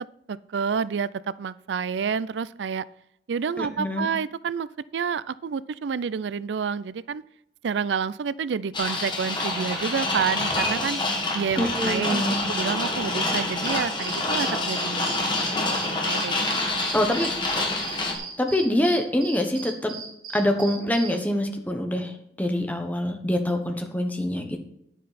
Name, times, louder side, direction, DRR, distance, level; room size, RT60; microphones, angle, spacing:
voice 1, 0.3-1.1 1.4-2.8 3.3-4.7 4.9-7.2 7.6-11.0 11.3-16.8, right 6 dB, 90° right, 19 dB, 0.4 m, -29 dB
voice 2, 3.6-4.1 11.6-12.4 16.9-17.3 18.4-19.9 20.3-24.6, left 1 dB, 10° left, 5 dB, 1.2 m, -25 dB
sound 1, 8.7-18.1, left 2 dB, 25° left, 1.8 m, -27 dB
sound 2, 13.6-21.2, right 5 dB, 55° right, 2.9 m, -38 dB
9.7 x 9.0 x 4.2 m, 0.77 s
head